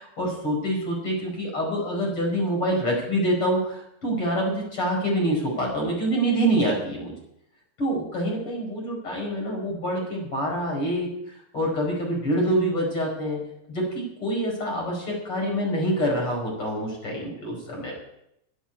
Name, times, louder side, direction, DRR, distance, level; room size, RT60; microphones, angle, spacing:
voice 1, 0.0-7.1 7.8-11.1 11.5-13.4 13.7-18.0, right 1 dB, 40° left, -1 dB, 6.0 m, -26 dB
11.0 x 9.3 x 9.6 m, 0.78 s
omnidirectional pair, 4.0 m